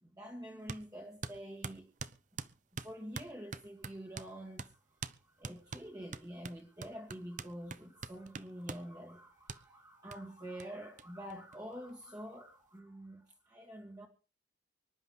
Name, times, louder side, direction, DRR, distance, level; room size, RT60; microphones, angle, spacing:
voice 1, 0.0-1.9 2.8-14.1, equal, 20° right, 2.2 m, -47 dB
sound 1, 0.7-0.8 1.2-4.3 4.6-4.7 5.0-5.2 5.4-8.9 9.5-9.6 10.1-10.2 10.6-10.7 11.0-11.1 11.3-12.0, right 4 dB, 45° right, 0.7 m, -44 dB
24.5 x 11.0 x 3.7 m
head